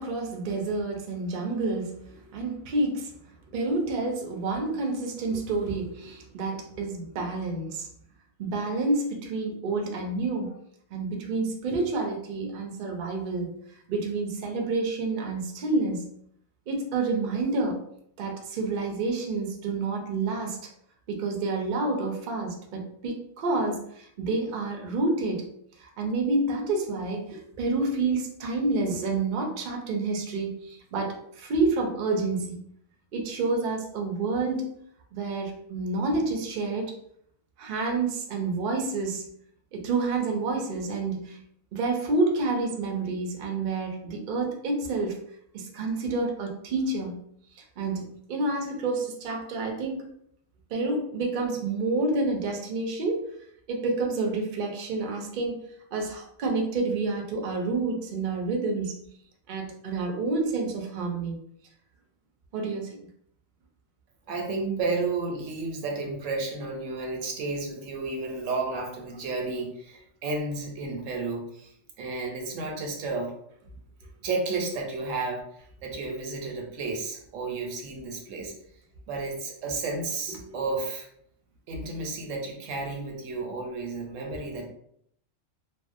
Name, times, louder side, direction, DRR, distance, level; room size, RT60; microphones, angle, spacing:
voice 1, 0.0-3.1 3.5-7.9 8.4-10.5 10.9-13.5 13.9-16.1 16.7-17.8 18.2-20.6 21.1-25.5 25.8-32.6 33.1-34.7 35.1-36.9 37.6-39.2 39.7-41.4 41.7-45.2 45.5-47.2 47.6-50.1 50.7-53.2 53.7-55.6 55.9-59.0 59.5-61.4 62.5-63.0 80.5-80.6, right 3 dB, 60° right, 1 dB, 0.5 m, -29 dB
voice 2, 64.3-73.3 74.2-78.5 79.1-81.1 81.7-84.7, right 3 dB, 85° right, 1 dB, 1.0 m, -32 dB
2.6 x 2.0 x 2.5 m, 0.70 s
omnidirectional pair, 1.3 m